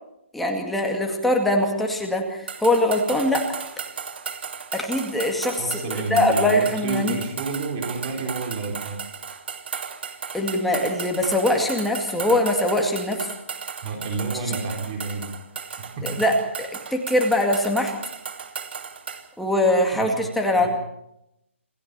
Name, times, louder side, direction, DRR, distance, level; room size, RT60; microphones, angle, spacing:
voice 1, 0.3-3.6 4.7-7.2 10.3-13.3 14.5-14.6 16.0-17.9 19.4-20.7, left 1 dB, ahead, 1 dB, 2.1 m, -22 dB
sound 1, 2.5-19.3, right 6 dB, 55° right, 2.6 m, -35 dB
voice 2, 5.6-9.0 13.8-15.4 16.0-16.2 19.9-20.1 20.6-20.7, right 3 dB, 25° right, 2 dB, 4.3 m, -29 dB
27.5 x 15.0 x 6.9 m, 0.83 s
hypercardioid pair, 170°, 7 cm